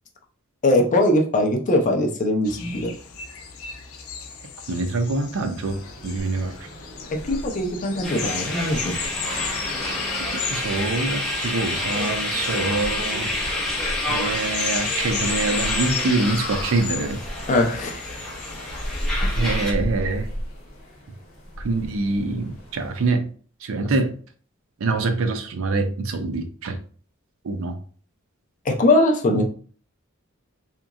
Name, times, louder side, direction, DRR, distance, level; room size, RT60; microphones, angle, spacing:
voice 1, 0.6-2.9 7.2-9.0 17.5-18.0 19.2-19.3 28.6-29.4, left 1 dB, 35° left, 3 dB, 0.5 m, -21 dB
sound 1, 2.4-19.1, left 6 dB, 90° left, 0.5 m, -35 dB
voice 2, 4.7-6.6 10.3-13.3 14.1-17.2 19.4-20.3 21.6-23.3 23.6-24.1 24.8-26.8 27.4-27.8 29.3-29.4, right 3 dB, 70° right, 7 dB, 0.4 m, -25 dB
sound 2, 5.6-23.1, equal, 70° left, 0.9 m, -35 dB
sound 3, 8.0-19.7, left 1 dB, ahead, 0.7 m, -28 dB
2.9 x 2.5 x 2.3 m, 0.43 s
head